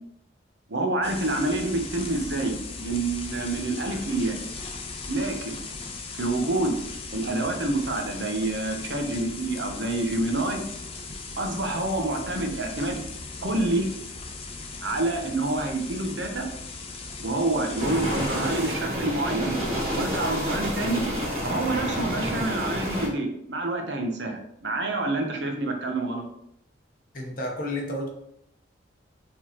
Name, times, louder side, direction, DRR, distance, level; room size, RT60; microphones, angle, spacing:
voice 1, 0.7-4.4 5.1-5.5 6.2-6.8 7.1-10.6 11.4-13.0 13.4-13.9 14.8-16.5 17.2-19.6 19.9-21.0 21.4-26.2, right 2 dB, 65° right, 3 dB, 0.9 m, -27 dB
sound 1, 1.0-18.8, left 4 dB, 30° left, 0.6 m, -38 dB
sound 2, 17.8-23.1, equal, 30° right, 1.7 m, -29 dB
voice 2, 27.1-28.1, left 1 dB, 45° left, 1 dB, 0.9 m, -31 dB
4.7 x 3.9 x 2.9 m, 0.76 s
head